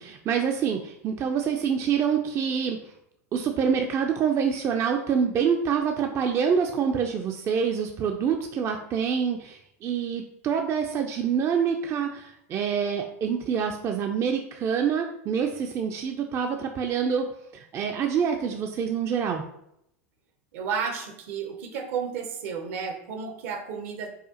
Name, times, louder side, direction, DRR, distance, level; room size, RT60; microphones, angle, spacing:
voice 1, 0.0-2.8 3.3-19.4, right 7 dB, 35° right, 4 dB, 0.4 m, -26 dB
voice 2, 20.5-24.1, right 6 dB, 65° right, 5 dB, 0.7 m, -32 dB
4.8 x 2.4 x 2.8 m, 0.76 s
hypercardioid pair, 95°, 8 cm